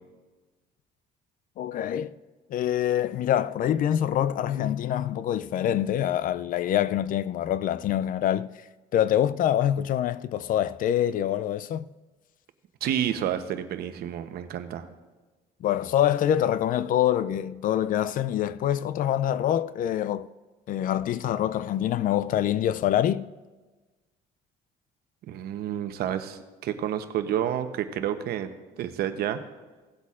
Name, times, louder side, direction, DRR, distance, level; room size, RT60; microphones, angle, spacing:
voice 1, 1.6-2.1 2.5-8.5 8.9-11.9 15.6-20.3 20.7-23.3, left 11 dB, 55° left, 0.4 m, -25 dB
voice 2, 12.8-14.9 25.3-28.5 28.8-29.4, right 10 dB, 70° right, 0.9 m, -29 dB
17.5 x 8.1 x 2.5 m
cardioid pair, 110°, 17 cm